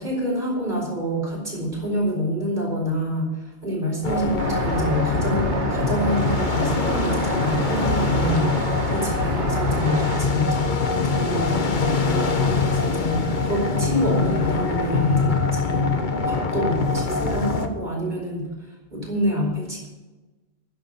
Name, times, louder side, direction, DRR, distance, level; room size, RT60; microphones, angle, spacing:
voice 1, 0.0-8.5 8.9-15.9 16.2-18.5 18.9-19.9, equal, 45° right, -1 dB, 4.9 m, -27 dB
sound 1, 4.0-17.7, left 4 dB, 45° left, 1.2 m, -23 dB
Traffic noise roadway noise, 4.4-10.2, right 3 dB, 85° right, 1.7 m, -30 dB
13.0 x 9.9 x 5.7 m, 1.1 s
omnidirectional pair, 1.1 m